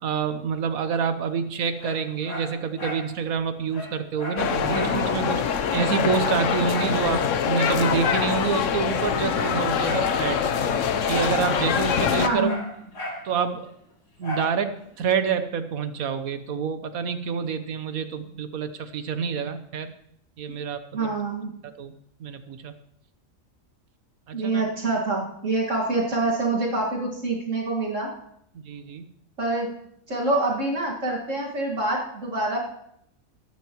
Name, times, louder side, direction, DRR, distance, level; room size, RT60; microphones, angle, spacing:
voice 1, 0.0-5.4 5.7-10.4 11.1-12.6 13.2-13.7 14.2-19.9 20.4-21.1 21.8-21.9 22.2-22.7 24.3-24.6 28.6-29.0, right 6 dB, 85° right, 10 dB, 1.4 m, -27 dB
Dog, 1.8-3.1 3.4-3.5 3.7-5.0 5.3-5.4 5.7-7.0 8.0-8.3 8.8-10.1 11.1-11.4 11.7-13.3 14.2-14.6 15.0-15.1, left 1 dB, 85° left, 3.3 m, -35 dB
sound 1, 4.4-12.3, left 7 dB, 65° left, 1.1 m, -24 dB
voice 2, 12.2-12.6 20.9-21.5 24.3-28.1 29.4-29.7 30.1-32.6, right 2 dB, 60° right, -3 dB, 2.3 m, -26 dB
21.5 x 10.5 x 3.0 m, 0.74 s
omnidirectional pair, 1.5 m